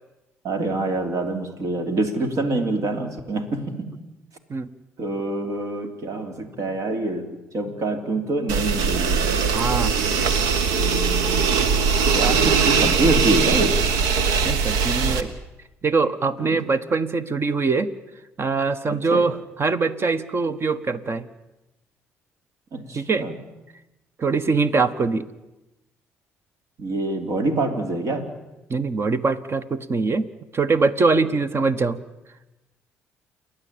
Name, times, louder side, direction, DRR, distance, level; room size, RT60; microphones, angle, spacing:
voice 1, 0.4-4.0 5.0-7.3 7.5-9.2 10.7-11.5 12.1-13.8 16.4-16.6 18.9-19.3 22.7-23.4 26.8-28.3, right 2 dB, 60° right, 7 dB, 3.2 m, -26 dB
sound 1, 8.5-15.2, right 5 dB, 75° right, 1.3 m, -21 dB
voice 2, 9.5-9.9 14.4-15.3 15.8-17.9 18.4-21.3 22.9-23.3 24.2-25.2 28.7-32.0, right 4 dB, 40° right, 14 dB, 1.4 m, -23 dB
29.0 x 11.5 x 8.7 m, 1.0 s
hypercardioid pair, 55°, 6 cm